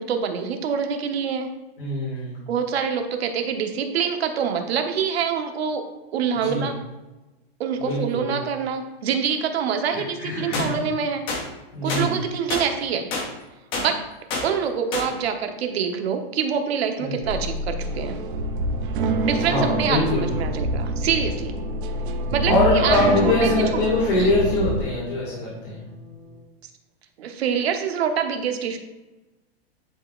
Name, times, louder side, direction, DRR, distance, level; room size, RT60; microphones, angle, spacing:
voice 1, 0.0-1.5 2.5-5.8 6.1-6.7 7.6-11.2 11.8-13.1 13.8-14.0 14.4-18.2 19.2-21.6 22.3-23.0 23.2-23.8 24.2-24.3 27.2-28.8, right 7 dB, 80° right, 5 dB, 1.0 m, -25 dB
voice 2, 1.8-2.4 6.4-6.7 7.8-8.4 9.9-10.8 11.7-12.1 17.0-17.2 19.5-20.3 22.5-25.9, left 2 dB, 60° left, -6 dB, 2.1 m, -23 dB
sound 1, 10.5-10.7 11.3-11.4 11.9-12.0 12.5-12.7 13.1-13.3 13.7-13.9 14.3-14.5 14.9-15.1, left 3 dB, 15° left, 0.6 m, -27 dB
sound 2, 17.2-24.8, right 1 dB, 55° right, 0.6 m, -26 dB
sound 3, 20.8-26.4, right 1 dB, 15° right, 1.7 m, -35 dB
10.0 x 4.0 x 2.5 m, 1.1 s
supercardioid pair, 175°, 31 cm